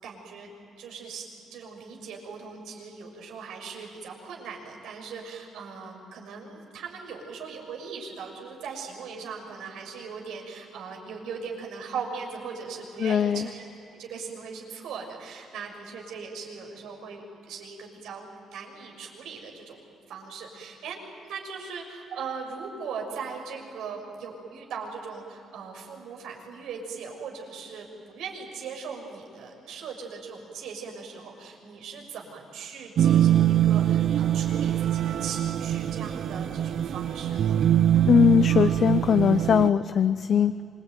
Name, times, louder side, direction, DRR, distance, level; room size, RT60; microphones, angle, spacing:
voice 1, 0.0-0.5 0.8-13.7 14.0-19.8 20.1-37.6, right 5 dB, 85° right, 1 dB, 6.5 m, -39 dB
voice 2, 13.0-13.5 38.1-40.6, left 8 dB, 50° left, 12 dB, 0.6 m, -21 dB
sound 1, 33.0-39.7, right 11 dB, 60° right, 0.7 m, -23 dB
27.0 x 23.5 x 9.3 m, 2.8 s
cardioid pair, 125°, 0 cm